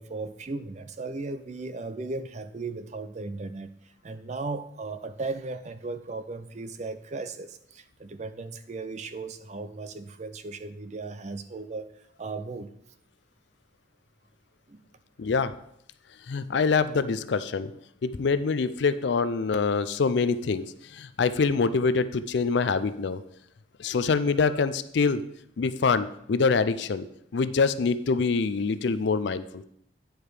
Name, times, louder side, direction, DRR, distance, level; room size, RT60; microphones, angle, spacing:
voice 1, 0.0-11.9 12.2-12.7 14.7-14.8, right 3 dB, 35° right, 12 dB, 0.4 m, -36 dB
voice 2, 15.2-15.5 16.3-17.7 18.0-23.2 23.8-25.2 25.6-27.1 27.3-29.6, left 4 dB, 60° left, 14 dB, 0.4 m, -25 dB
9.1 x 4.8 x 4.9 m, 0.72 s
head